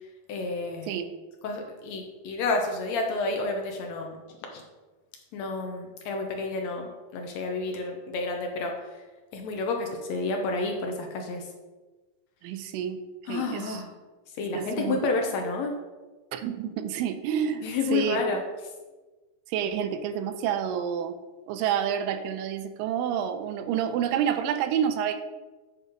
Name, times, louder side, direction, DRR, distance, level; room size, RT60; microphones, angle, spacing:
voice 1, 0.3-1.0 1.4-4.2 4.5-4.6 5.3-8.7 9.3-11.5 13.3-13.9 14.4-15.7 17.6-18.4, left 3 dB, 75° left, 3 dB, 1.7 m, -30 dB
voice 2, 12.4-13.0 13.3-13.8 14.5-15.0 16.3-18.4 19.5-21.2 21.5-25.2, right 8 dB, 90° right, 9 dB, 2.3 m, -29 dB
8.7 x 4.2 x 5.0 m, 1.2 s
omnidirectional pair, 3.9 m